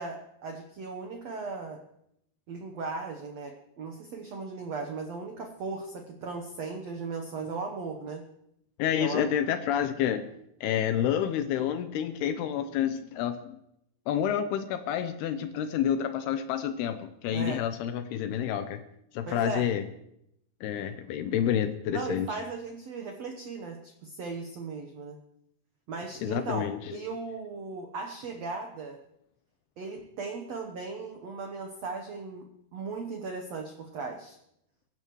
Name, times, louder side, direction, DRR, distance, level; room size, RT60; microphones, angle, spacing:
voice 1, 0.0-1.8 2.5-8.2 9.0-9.2 17.3-17.6 19.3-19.7 21.9-25.2 25.9-29.0 29.8-32.5 32.7-34.4, right 4 dB, 85° right, 3 dB, 1.4 m, -37 dB
voice 2, 8.8-10.3 10.6-13.6 14.1-18.8 19.1-19.8 20.6-22.3 26.2-27.0, left 9 dB, 80° left, 9 dB, 2.6 m, -29 dB
23.5 x 12.5 x 3.1 m, 0.77 s
omnidirectional pair, 4.8 m